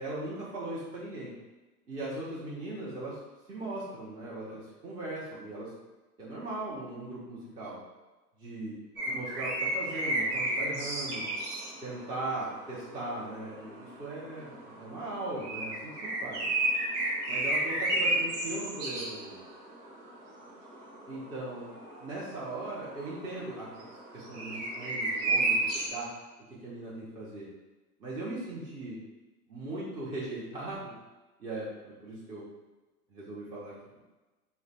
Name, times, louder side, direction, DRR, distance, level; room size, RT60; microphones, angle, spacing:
voice 1, 0.0-1.3 1.9-3.2 3.5-5.7 6.2-7.8 8.4-8.8 9.1-11.3 11.8-16.5 17.3-19.4 21.1-21.7 22.0-23.7 24.1-26.1 26.5-27.5 28.0-29.0 29.5-30.9 31.4-32.5 33.1-34.0, right 2 dB, 10° right, -8 dB, 0.3 m, -39 dB
sound 1, 9.0-25.9, right 1 dB, 80° right, 1.1 m, -33 dB
2.9 x 2.1 x 4.0 m, 1.2 s
hypercardioid pair, 105°, 47 cm